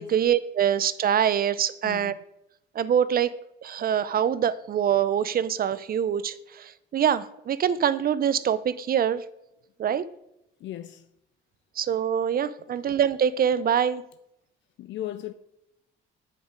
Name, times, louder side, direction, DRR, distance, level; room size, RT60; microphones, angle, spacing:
voice 1, 0.0-2.1 2.7-3.3 3.6-9.2 9.8-10.0 11.8-14.0, right 9 dB, 50° right, 0.5 m, -24 dB
voice 2, 10.6-11.0 14.8-15.3, left 13 dB, 70° left, 0.4 m, -36 dB
8.6 x 5.0 x 5.0 m
cardioid pair, 90°, 20 cm